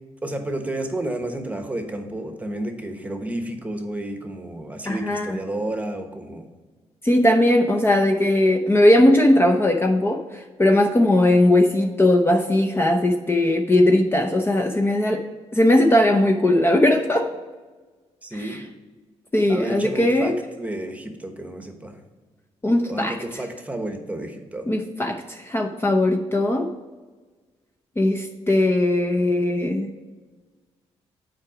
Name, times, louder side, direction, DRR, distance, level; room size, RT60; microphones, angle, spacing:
voice 1, 0.2-6.4 18.2-18.7 19.5-22.0 22.9-24.7, right 1 dB, 10° right, 5 dB, 1.1 m, -31 dB
voice 2, 4.8-5.4 7.0-15.2 15.5-17.3 18.3-18.6 19.3-20.3 22.6-23.2 24.7-26.7 28.0-29.9, left 1 dB, 20° left, 2 dB, 0.7 m, -19 dB
7.4 x 4.9 x 4.9 m, 1.3 s
cardioid pair, 85°, 12 cm